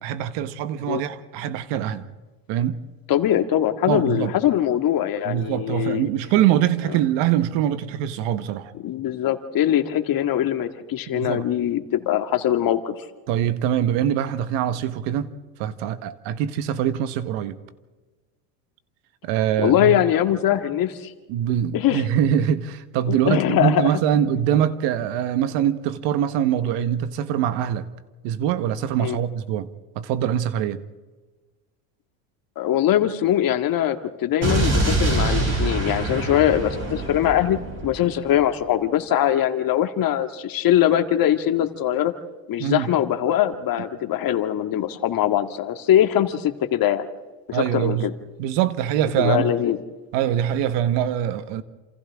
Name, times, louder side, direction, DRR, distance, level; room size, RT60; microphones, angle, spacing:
voice 1, 0.0-2.1 2.5-2.8 3.9-4.3 5.2-8.7 11.1-11.4 13.3-15.3 15.6-17.5 19.2-20.0 21.3-27.9 28.2-29.7 29.9-30.8 42.6-42.9 47.5-48.1 48.4-49.5 50.1-51.6, right 10 dB, 60° right, 1.5 m, -23 dB
voice 2, 3.1-6.1 8.7-12.9 19.6-21.1 21.7-22.1 23.1-23.9 29.0-29.2 32.6-37.6 37.8-42.1 42.5-47.1 47.5-48.1 49.2-49.8, left 11 dB, 45° left, 2.0 m, -22 dB
Explosion, 34.4-38.5, right 2 dB, 30° right, 7.3 m, -24 dB
29.0 x 27.5 x 3.7 m
hypercardioid pair, 90°, 48 cm